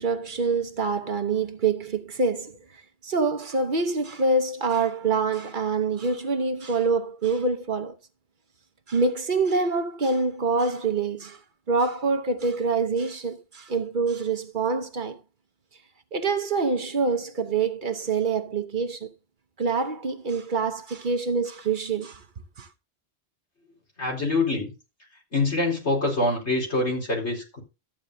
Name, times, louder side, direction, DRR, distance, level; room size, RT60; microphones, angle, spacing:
voice 1, 0.0-2.6 3.0-8.0 8.9-11.4 11.7-15.2 16.1-19.1 19.6-22.2 22.6-22.7, right 4 dB, 50° right, 1.0 m, -26 dB
voice 2, 24.0-24.7 25.3-27.6, left 2 dB, 80° left, 4.8 m, -25 dB
14.0 x 8.7 x 2.7 m
omnidirectional pair, 1.1 m